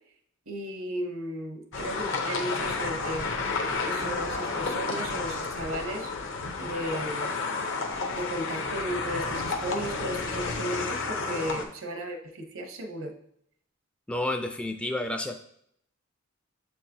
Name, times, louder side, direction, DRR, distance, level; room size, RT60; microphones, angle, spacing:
voice 1, 0.5-3.3 3.8-6.1 6.6-7.4 8.1-13.1, right 1 dB, 80° right, 5 dB, 0.9 m, -35 dB
sound 1, 1.7-11.7, left 4 dB, 65° left, 0.8 m, -31 dB
voice 2, 14.1-15.4, left 1 dB, 5° left, 4 dB, 0.3 m, -30 dB
7.2 x 4.7 x 2.8 m, 0.70 s
head